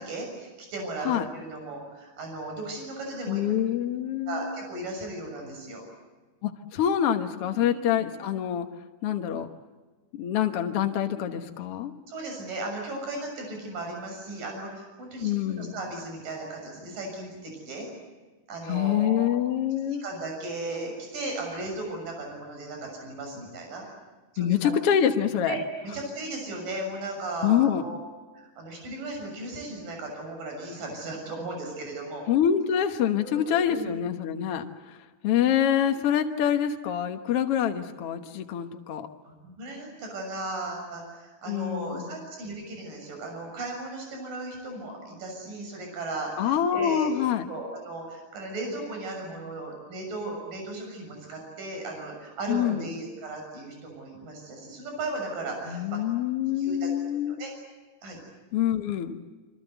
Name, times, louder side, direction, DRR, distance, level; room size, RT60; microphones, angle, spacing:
voice 1, 0.0-3.4 4.3-5.8 7.4-7.8 12.1-17.9 18.5-19.4 20.0-23.9 24.3-24.7 25.5-25.6 25.8-28.0 28.3-32.2 33.2-33.9 39.2-47.1 47.5-56.0 56.6-57.5 58.0-58.2, right 2 dB, 60° right, 2 dB, 8.4 m, -36 dB
voice 2, 3.3-4.6 6.4-8.7 9.0-9.5 10.1-11.9 15.2-15.8 18.7-20.0 24.4-25.6 27.4-27.9 32.3-34.6 35.2-39.1 41.5-42.1 46.4-47.5 52.5-52.9 55.7-57.4 58.5-59.2, left 9 dB, 65° left, 6 dB, 1.5 m, -26 dB
27.5 x 25.0 x 8.1 m, 1.3 s
omnidirectional pair, 4.4 m